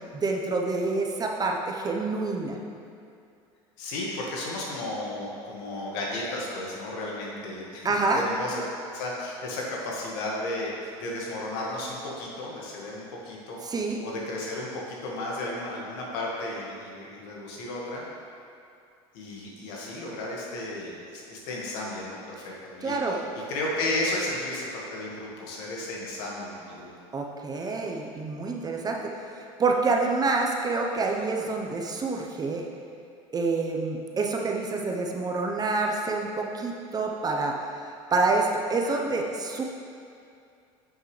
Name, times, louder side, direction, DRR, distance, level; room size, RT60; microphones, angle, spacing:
voice 1, 0.1-2.6 7.8-8.2 13.6-14.0 22.8-23.2 27.1-29.0 29.4-32.7 33.3-37.6 38.1-39.6, right 3 dB, 25° right, 1 dB, 0.8 m, -27 dB
voice 2, 3.8-8.7 8.9-13.6 14.0-18.0 19.1-26.9, left 1 dB, 70° left, -3 dB, 1.8 m, -33 dB
9.0 x 6.5 x 3.3 m, 2.4 s
supercardioid pair, 100°, 14 cm